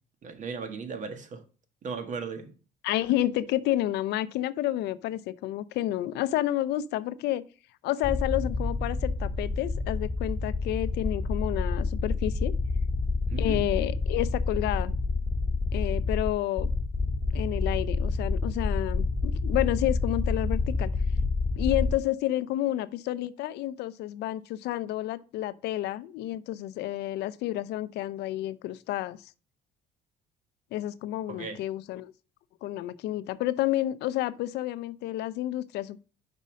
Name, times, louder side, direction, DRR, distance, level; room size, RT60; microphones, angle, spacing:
voice 1, 0.2-1.4 1.8-2.5 13.3-13.7 31.3-31.6, right 5 dB, 45° right, 1.5 m, -36 dB
voice 2, 2.8-7.4 7.8-12.5 13.4-14.9 15.7-16.7 17.3-20.9 21.6-29.2 30.7-32.1 32.6-36.0, left 14 dB, 80° left, 0.5 m, -30 dB
sound 1, 8.0-21.9, left 3 dB, 20° left, 1.5 m, -28 dB
5.5 x 5.3 x 6.2 m
cardioid pair, 110°, 17 cm